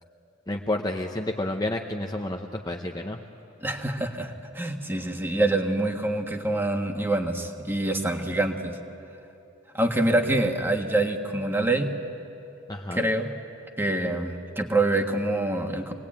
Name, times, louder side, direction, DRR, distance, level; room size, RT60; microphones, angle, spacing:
voice 1, 0.5-3.2 12.7-13.1, left 1 dB, 20° left, 3 dB, 0.9 m, -30 dB
voice 2, 3.6-8.8 9.7-11.9 12.9-13.3 13.8-15.9, right 2 dB, 10° right, 3 dB, 1.5 m, -26 dB
25.0 x 19.5 x 8.9 m, 2.8 s
head